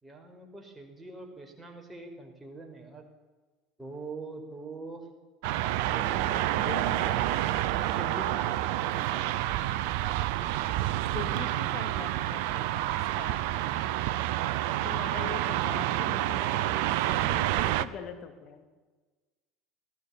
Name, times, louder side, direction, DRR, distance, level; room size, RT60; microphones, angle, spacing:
voice 1, 0.0-3.1 3.8-5.1 5.9-7.2 7.7-9.2, right 2 dB, 10° right, 2 dB, 5.3 m, -44 dB
sound 1, 5.4-17.8, right 14 dB, 60° right, 0.8 m, -28 dB
voice 2, 6.5-7.2 11.1-12.8 13.1-13.5 14.7-18.7, left 8 dB, 40° left, 6 dB, 3.0 m, -42 dB
20.0 x 16.5 x 8.8 m, 1.3 s
figure-of-eight pair, 70°, 0 cm